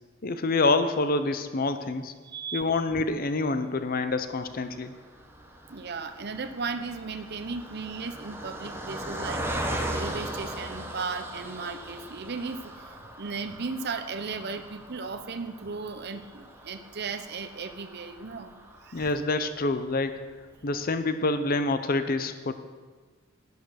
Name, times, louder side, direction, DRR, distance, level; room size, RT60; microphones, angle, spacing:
voice 1, 0.2-2.1 2.5-4.9 18.9-20.2 20.6-22.5, left 3 dB, 45° left, 10 dB, 0.7 m, -27 dB
voice 2, 2.2-2.7 5.7-9.4 9.9-19.1, right 4 dB, 55° right, 8 dB, 0.8 m, -36 dB
Car passing by, 4.2-19.6 20.2-20.3 20.5-20.7, right 1 dB, 10° right, 1.2 m, -39 dB
11.5 x 9.7 x 6.4 m, 1.4 s
head